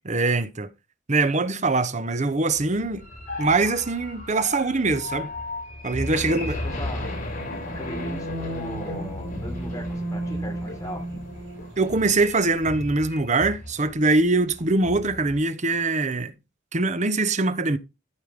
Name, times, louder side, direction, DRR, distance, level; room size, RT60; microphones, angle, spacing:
voice 1, 0.0-0.7 1.1-3.0 3.4-5.3 5.8-6.6 11.8-16.3 16.7-17.8, right 3 dB, 40° right, 1.0 m, -23 dB
sound 1, 2.7-13.7 14.1-14.3 14.6-15.3, left 1 dB, 45° left, 7.4 m, -33 dB
sound 2, 6.1-12.2, equal, 65° right, 3.1 m, -46 dB
voice 2, 6.2-7.2 7.7-11.1, equal, 20° left, 3.9 m, -38 dB
sound 3, 7.0-7.2 7.5-8.1 8.4-9.1 9.3-9.9 10.2-10.9 11.1-11.3 11.6-11.7 12.0-12.1, left 2 dB, 85° left, 6.6 m, -45 dB
14.5 x 5.5 x 3.6 m
head